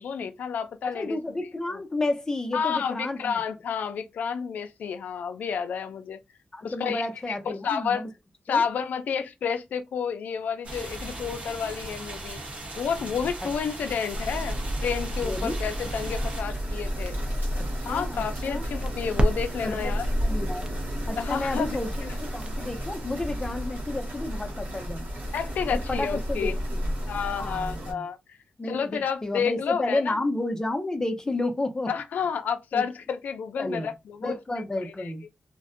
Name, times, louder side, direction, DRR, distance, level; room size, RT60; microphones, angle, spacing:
voice 1, 0.0-1.8 2.5-6.2 6.6-8.1 8.5-12.4 12.8-17.2 17.8-20.1 21.2-21.8 25.3-26.6 27.1-28.4 28.6-30.2 31.9-34.3 34.8-35.1, left 6 dB, 80° left, 0.3 m, -30 dB
voice 2, 0.8-3.3 6.5-8.1 8.5-8.6 15.2-15.6 17.6-18.6 19.6-19.8 20.2-20.7 21.1-21.9 22.2-25.0 25.7-26.9 27.3-28.1 28.6-31.9 32.7-32.8 33.6-33.9 34.2-35.2, left 2 dB, 20° left, 0.5 m, -31 dB
sound 1, 10.6-16.4, right 2 dB, 55° right, 0.9 m, -38 dB
sound 2, 12.9-23.9, equal, 35° right, 0.5 m, -35 dB
sound 3, 14.1-27.9, equal, 80° right, 1.0 m, -32 dB
2.5 x 2.1 x 2.5 m
cardioid pair, 85°, 3 cm